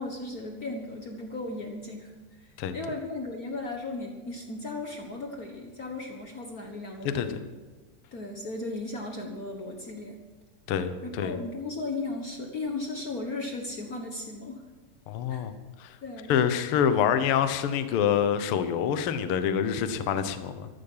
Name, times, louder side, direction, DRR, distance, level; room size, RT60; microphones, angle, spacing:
voice 1, 0.0-7.4 8.1-10.2 11.0-14.6 15.3-15.5 16.0-16.3, left 2 dB, 90° left, 2 dB, 0.8 m, -36 dB
voice 2, 7.0-7.4 10.7-11.4 15.1-15.5 15.8-16.0 16.3-20.7, left 8 dB, 75° left, 10 dB, 1.3 m, -26 dB
14.0 x 14.0 x 5.6 m, 1.3 s
omnidirectional pair, 4.0 m